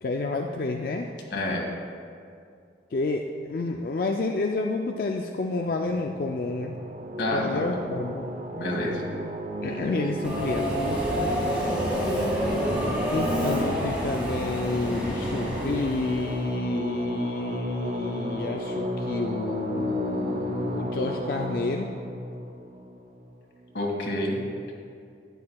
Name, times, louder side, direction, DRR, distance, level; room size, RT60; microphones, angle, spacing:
voice 1, 0.0-1.1 2.9-6.8 7.3-8.3 9.6-11.0 13.1-21.9, left 3 dB, 55° left, 2 dB, 0.4 m, -29 dB
sound 1, 5.5-23.6, right 1 dB, 45° right, 0.6 m, -34 dB
voice 2, 7.2-7.8 8.5-9.0 11.4-11.8 23.7-24.4, left 1 dB, 85° left, -1 dB, 1.8 m, -29 dB
Subway metro underground, 10.2-16.5, equal, 10° right, 2.0 m, -28 dB
12.5 x 9.6 x 2.3 m, 2.4 s
head